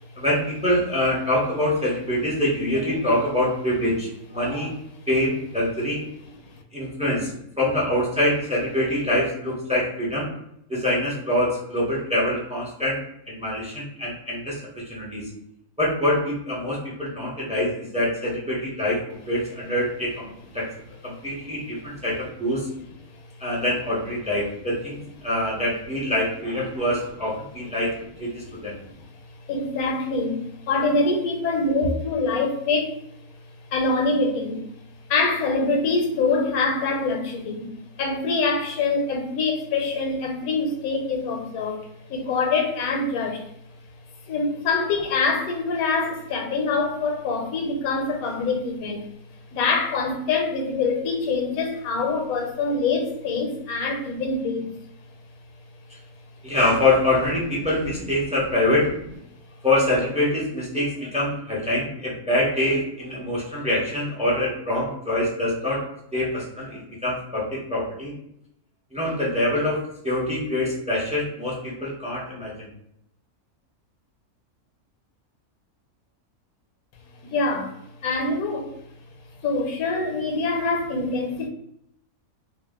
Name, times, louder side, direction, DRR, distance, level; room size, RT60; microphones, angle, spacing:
voice 1, 0.2-4.7 5.1-6.0 6.7-10.3 10.7-13.0 13.3-14.6 14.9-15.2 15.8-20.7 21.0-22.7 23.4-27.9 28.2-28.8 56.4-58.9 59.6-65.9 66.1-68.1 68.9-72.7, left 1 dB, 10° right, 0.3 m, -25 dB
voice 2, 29.5-33.0 33.7-34.6 35.1-37.7 38.0-43.4 44.3-49.0 49.5-54.7 77.3-77.7 78.0-78.7 79.4-81.5, left 3 dB, 75° left, 1.1 m, -24 dB
2.7 x 2.0 x 3.4 m
omnidirectional pair, 1.6 m